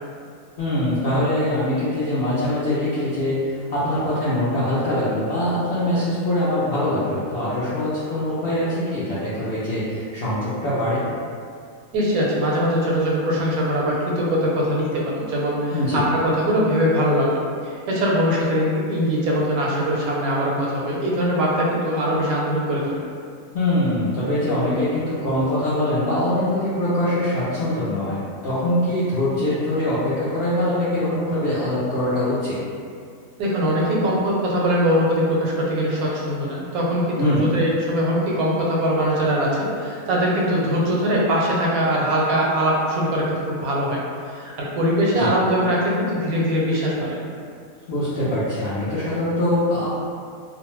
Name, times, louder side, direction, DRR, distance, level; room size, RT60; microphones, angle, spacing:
voice 1, 0.6-3.4 3.7-11.0 15.7-16.0 23.5-32.6 37.2-37.4 45.1-45.3 47.9-49.9, left 1 dB, 70° left, -11 dB, 0.5 m, -23 dB
voice 2, 11.9-23.0 33.4-44.0 44.3-47.2, equal, 80° right, -4 dB, 1.1 m, -22 dB
2.5 x 2.0 x 3.0 m, 2.2 s
omnidirectional pair, 1.5 m